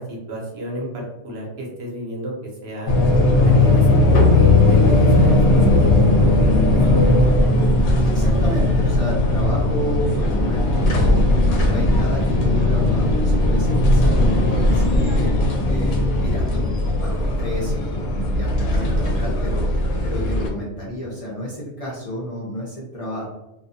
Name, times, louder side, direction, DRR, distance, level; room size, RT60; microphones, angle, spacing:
voice 1, 0.0-2.3 2.6-2.9 3.4-7.3, right 1 dB, 65° right, -2 dB, 0.9 m, -31 dB
sound 1, 2.9-20.5, left 2 dB, 75° left, 0.8 m, -17 dB
voice 2, 8.1-11.2 11.6-15.3 15.6-18.0 18.3-19.7 20.0-23.3, equal, 40° left, -7 dB, 0.5 m, -30 dB
2.3 x 2.2 x 2.6 m, 0.98 s
omnidirectional pair, 1.2 m